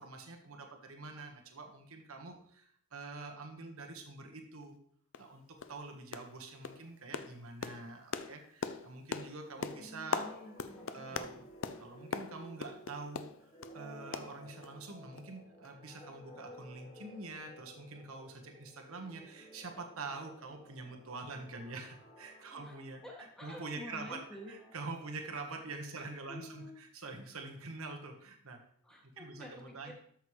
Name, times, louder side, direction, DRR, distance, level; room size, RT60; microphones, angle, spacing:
voice 1, 0.0-4.8 5.2-10.3 10.9-11.5 11.8-13.5 13.7-23.0 23.4-28.6 29.0-29.9, right 3 dB, 75° right, 3 dB, 1.4 m, -46 dB
sound 1, 4.6-4.7 5.1-5.3 5.6-5.8 6.1-6.4 6.6-13.8 14.1-14.9 15.2-15.3 15.6-15.7, left 5 dB, 60° left, 0.5 m, -41 dB
sound 2, 9.6-25.9, equal, 30° left, 1.8 m, -56 dB
voice 2, 9.8-11.3 22.5-22.8 23.0-24.6 26.3-26.8 28.8-29.9, left 1 dB, 5° left, -2 dB, 1.8 m, -50 dB
13.0 x 6.6 x 3.2 m, 0.64 s
head